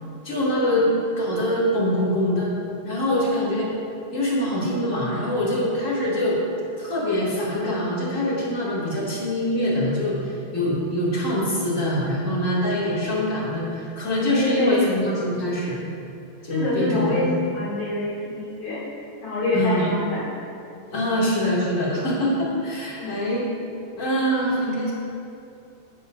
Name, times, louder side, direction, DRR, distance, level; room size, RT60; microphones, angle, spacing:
voice 1, 0.2-0.9 1.2-2.5 2.8-3.7 4.1-6.4 6.8-15.9 16.4-17.4 19.5-19.9 20.9-23.5 24.0-24.9, equal, 25° left, -7 dB, 2.5 m, -24 dB
voice 2, 14.3-14.8 16.5-18.8 19.2-20.2 23.0-23.3, left 2 dB, 75° left, -9 dB, 4.0 m, -25 dB
16.5 x 8.4 x 2.7 m, 2.6 s
omnidirectional pair, 3.7 m